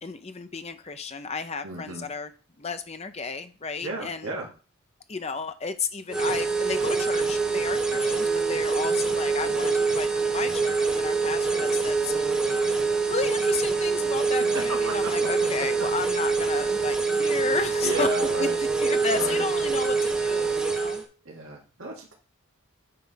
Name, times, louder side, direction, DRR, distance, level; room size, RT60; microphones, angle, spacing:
voice 1, 0.0-2.3 2.6-4.3 5.1-12.7 13.1-18.1 18.4-18.5 18.8-21.0, left 4 dB, 30° left, 9 dB, 0.6 m, -33 dB
voice 2, 1.6-2.1 3.8-4.5 14.5-15.1 15.6-15.7 17.8-18.6 19.1-19.4 21.3-22.1, right 2 dB, 65° right, 0 dB, 1.9 m, -33 dB
sound 1, 6.1-21.0, right 4 dB, 5° right, 1.2 m, -25 dB
9.3 x 3.3 x 5.7 m, 0.35 s
head